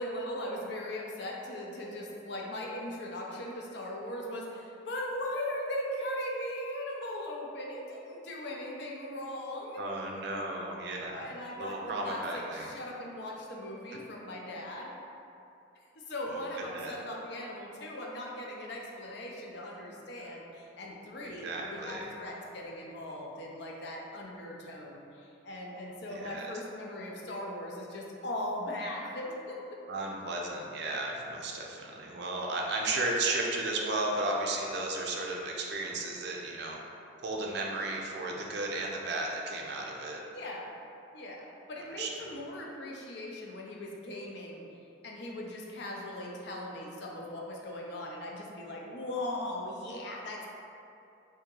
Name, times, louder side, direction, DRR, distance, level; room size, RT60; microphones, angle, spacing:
voice 1, 0.0-9.8 11.1-14.9 16.1-29.6 40.3-40.8 41.1-44.6 45.0-50.5, left 1 dB, 55° left, -1 dB, 0.5 m, -39 dB
voice 2, 9.8-11.3 11.6-12.7 16.3-16.4 16.7-16.9 20.2-20.3 21.2-22.1 26.1-26.5 29.9-36.8 37.2-40.2 41.9-42.1, right 2 dB, 55° right, -1 dB, 0.4 m, -34 dB
2.8 x 2.7 x 3.7 m, 2.7 s
head